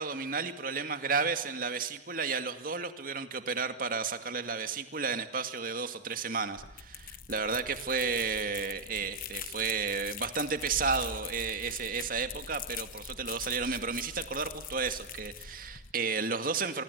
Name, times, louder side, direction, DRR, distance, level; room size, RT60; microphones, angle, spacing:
voice 1, 0.0-16.8, right 5 dB, 55° right, 8 dB, 2.3 m, -32 dB
sound 1, 6.6-15.9, left 7 dB, 50° left, 1.1 m, -43 dB
25.0 x 25.0 x 8.2 m, 0.97 s
head